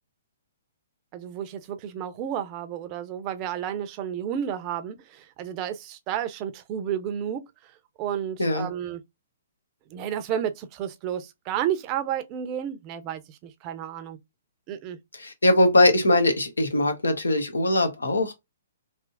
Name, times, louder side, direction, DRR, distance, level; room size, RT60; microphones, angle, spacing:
voice 1, 1.1-7.4 8.0-9.0 9.9-14.2 14.7-15.0, right 9 dB, 30° right, 0.6 m, -31 dB
voice 2, 15.2-18.3, left 1 dB, 80° left, 1.1 m, -21 dB
3.4 x 2.8 x 2.4 m
figure-of-eight pair, 120°, 0 cm